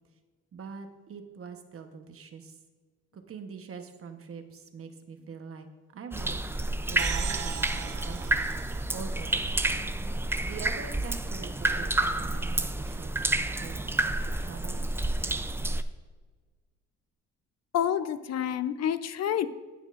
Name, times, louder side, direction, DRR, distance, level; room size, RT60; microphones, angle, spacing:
voice 1, 0.5-2.6 3.1-5.7 5.9-6.4 6.9-8.5 8.9-9.9 10.4-14.9, right 5 dB, 50° right, 6 dB, 1.1 m, -44 dB
sound 1, 6.1-15.8, right 2 dB, 10° right, 0.4 m, -29 dB
sound 2, 7.0-10.5, right 11 dB, 85° right, 0.7 m, -40 dB
voice 2, 17.7-19.5, left 9 dB, 60° left, 13 dB, 0.6 m, -28 dB
18.5 x 6.3 x 2.5 m, 1.4 s
cardioid pair, 90°, 30 cm